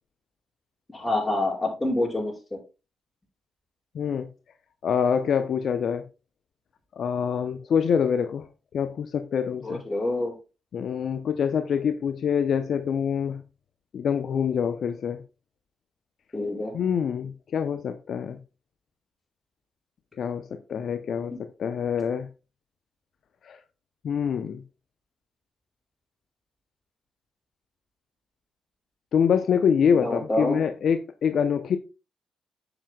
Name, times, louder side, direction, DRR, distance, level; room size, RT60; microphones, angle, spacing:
voice 1, 0.9-2.3 9.6-10.4 16.3-16.7 30.0-30.6, left 1 dB, 20° left, 4.9 m, -27 dB
voice 2, 3.9-4.3 4.8-6.1 7.0-8.5 8.7-9.8 10.7-13.4 13.9-15.2 16.7-18.4 20.2-22.3 23.4-23.6 24.0-24.6 29.1-31.8, left 7 dB, 60° left, 0.6 m, -25 dB
9.8 x 7.9 x 2.2 m
hypercardioid pair, 40°, 0 cm